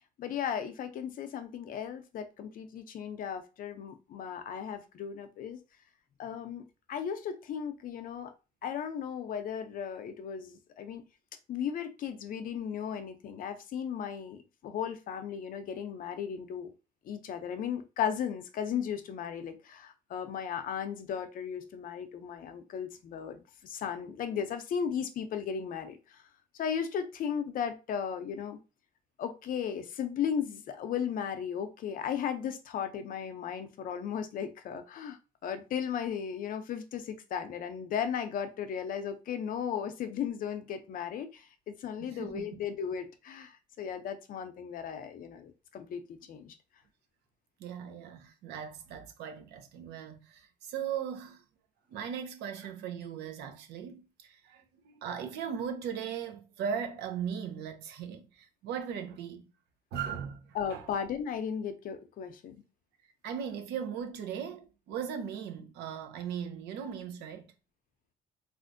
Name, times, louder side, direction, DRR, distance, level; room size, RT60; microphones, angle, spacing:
voice 1, 0.2-5.6 6.2-8.3 8.6-11.0 11.5-16.7 17.0-26.2 26.6-28.6 29.2-35.2 35.4-43.5 43.8-46.0 46.3-46.5 60.5-62.6, left 8 dB, 55° left, 0.6 m, -36 dB
voice 2, 42.0-42.5 47.6-51.4 51.9-59.5 59.9-60.9 63.2-67.5, right 7 dB, 80° right, 0.7 m, -38 dB
3.4 x 2.4 x 2.6 m
cardioid pair, 110°, 17 cm